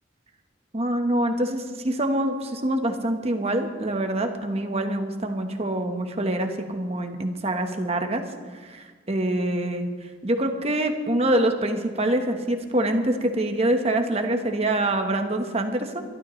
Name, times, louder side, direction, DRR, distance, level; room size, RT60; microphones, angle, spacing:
voice 1, 0.7-8.2 8.6-9.9 10.2-16.0, right 1 dB, 35° right, 5 dB, 1.3 m, -25 dB
23.5 x 12.5 x 3.2 m, 1.5 s
head